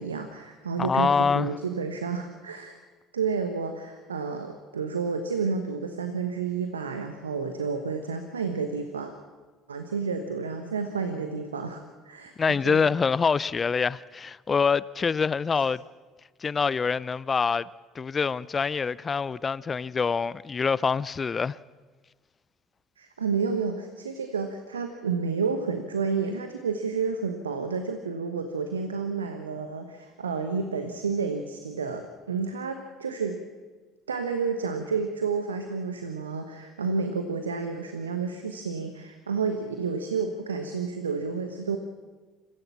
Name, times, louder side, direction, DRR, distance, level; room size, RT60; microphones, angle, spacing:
voice 1, 0.0-2.7 3.1-9.1 9.7-12.3 12.6-12.9 23.0-33.4 34.1-41.8, right 5 dB, 80° right, 1.1 m, -30 dB
voice 2, 0.8-1.5 12.4-15.8 16.4-17.7 17.9-21.6, left 5 dB, 30° left, 0.5 m, -25 dB
26.5 x 15.5 x 7.2 m
figure-of-eight pair, 60°, 0 cm